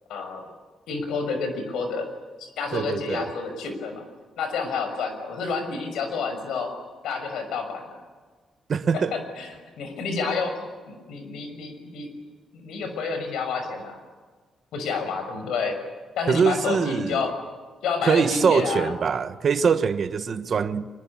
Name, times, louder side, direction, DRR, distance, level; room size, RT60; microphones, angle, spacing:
voice 1, 0.1-0.5 0.9-2.1 2.4-4.1 4.4-6.7 7.0-8.0 8.9-12.1 12.5-14.0 14.7-15.8 16.2-17.3 17.8-18.9, left 4 dB, 85° left, 6.0 m, -29 dB
voice 2, 2.7-3.3 8.7-9.1 16.3-17.3 18.0-20.9, right 6 dB, 35° right, 1.2 m, -23 dB
25.0 x 23.0 x 8.7 m
cardioid pair, 175°, 0 cm